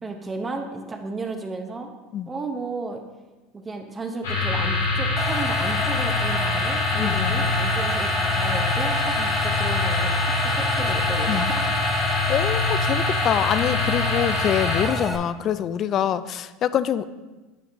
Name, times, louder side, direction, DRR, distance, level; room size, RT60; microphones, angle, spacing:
voice 1, 0.0-1.9 2.3-3.0 3.5-11.8, right 3 dB, 20° right, 4 dB, 0.8 m, -33 dB
sound 1, 4.2-14.9, left 3 dB, 90° left, 1.7 m, -24 dB
sound 2, 5.2-15.2, left 1 dB, 10° left, 0.7 m, -30 dB
voice 2, 7.0-7.3 9.2-9.3 11.3-11.5 12.3-17.1, left 10 dB, 45° left, 15 dB, 0.3 m, -25 dB
9.1 x 5.8 x 2.7 m, 1.2 s
hypercardioid pair, 90°, 0 cm